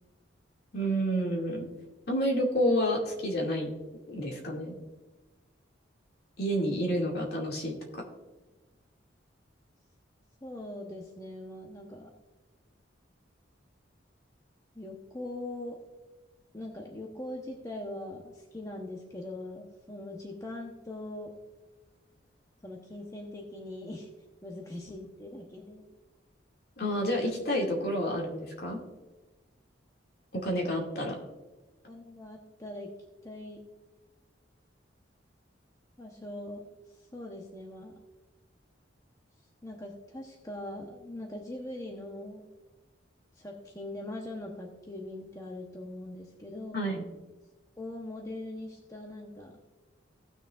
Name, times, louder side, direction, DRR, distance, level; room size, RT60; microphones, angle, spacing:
voice 1, 0.7-1.7 2.1-3.7 4.1-4.7 6.4-8.0 26.8-28.8 30.3-31.2 46.7-47.0, equal, 55° left, -1 dB, 2.3 m, -29 dB
voice 2, 10.4-12.1 14.7-15.8 16.5-21.3 22.6-24.1 24.4-25.8 31.9-32.9 33.2-33.6 36.0-36.6 37.0-37.9 39.6-42.4 43.4-46.9 47.8-49.5, left 1 dB, 15° left, 0 dB, 1.0 m, -41 dB
17.5 x 6.5 x 2.5 m, 1.2 s
head